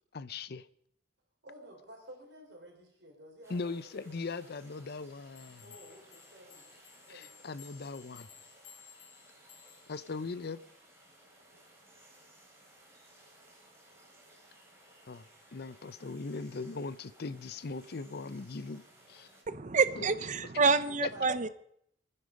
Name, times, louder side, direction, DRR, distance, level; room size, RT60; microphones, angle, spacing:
voice 1, 0.1-0.7 3.5-5.7 7.1-8.3 9.9-10.6 15.1-19.3 20.0-20.1 21.0-21.1, left 4 dB, 55° left, 0.6 m, -39 dB
voice 2, 1.4-4.1 5.6-6.8 7.1-7.5 20.9-21.5, right 1 dB, 65° right, 4.4 m, -52 dB
sound 1, 3.4-19.4, right 1 dB, 15° right, 4.3 m, -59 dB
sound 2, 5.3-10.0, left 9 dB, 90° left, 4.0 m, -56 dB
voice 3, 19.5-21.5, right 4 dB, 40° right, 0.6 m, -27 dB
24.0 x 9.9 x 5.3 m
head